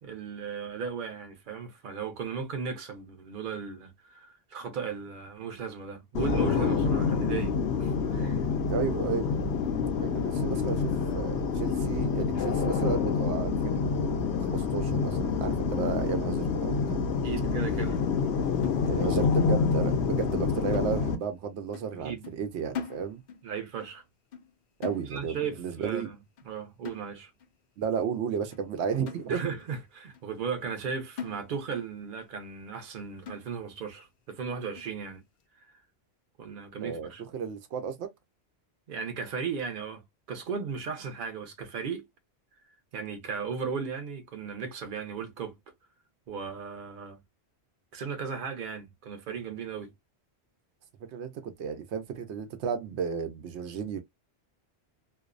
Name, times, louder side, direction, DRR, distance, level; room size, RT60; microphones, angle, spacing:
voice 1, 0.0-8.5 17.2-18.0 22.0-22.3 23.4-24.0 25.1-26.2 26.5-27.3 29.3-35.2 36.4-37.2 38.9-42.1 42.9-45.5 46.3-47.2 47.9-49.9, right 6 dB, 55° right, 0.8 m, -36 dB
sound 1, 6.1-21.1, left 5 dB, 90° left, 0.9 m, -27 dB
voice 2, 8.7-9.3 9.9-17.1 18.9-23.2 24.8-26.1 27.8-29.4 36.8-38.1 51.1-54.0, right 6 dB, 85° right, 0.9 m, -33 dB
sound 2, 18.6-19.9 20.2-20.4 20.7-21.4 21.7-22.0 22.2-23.5 23.8-24.0 24.3-24.6 24.8-25.5 25.8-26.1 26.4-26.5 26.8-27.5 28.0-28.1 28.5-28.6 29.1-29.7 30.1-30.2 30.7-30.9 31.2-31.9 32.2-32.3 32.7-32.9 33.3-33.8 34.3-34.4 34.7-35.0, left 7 dB, 55° left, 0.5 m, -43 dB
2.6 x 2.0 x 2.4 m
omnidirectional pair, 1.1 m